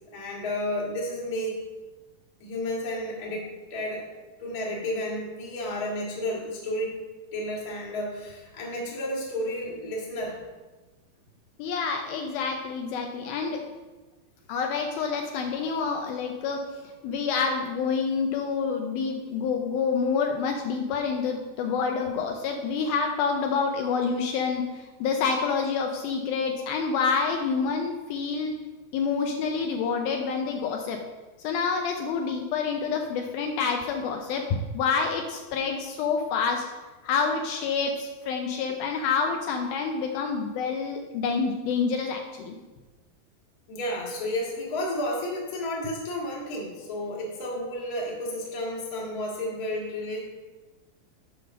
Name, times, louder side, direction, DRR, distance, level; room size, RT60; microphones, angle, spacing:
voice 1, 0.1-1.6 2.4-4.1 4.4-7.0 7.3-10.4 43.7-50.2, left 1 dB, 35° left, -4 dB, 1.5 m, -32 dB
voice 2, 11.6-13.6 14.5-16.6 17.0-28.5 28.9-31.0 31.4-36.7 37.0-42.5, left 5 dB, 80° left, 3 dB, 2.3 m, -27 dB
7.8 x 5.0 x 6.4 m, 1.2 s
omnidirectional pair, 4.5 m